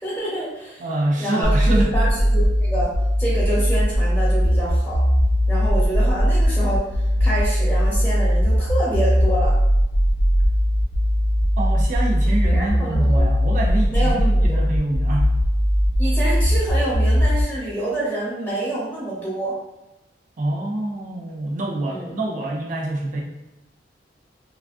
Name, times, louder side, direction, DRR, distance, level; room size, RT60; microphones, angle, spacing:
voice 1, 0.0-0.8 1.2-2.9 3.2-5.0 5.5-6.9 7.2-9.5 12.5-13.3 13.9-14.6 16.0-19.5 21.9-22.1, right 1 dB, 10° left, -8 dB, 0.9 m, -27 dB
voice 2, 0.8-1.9 11.6-15.3 20.4-23.2, right 1 dB, 45° right, 0 dB, 0.4 m, -26 dB
sound 1, 1.4-17.4, equal, 80° left, 0.6 m, -19 dB
3.2 x 2.3 x 2.4 m, 0.96 s
head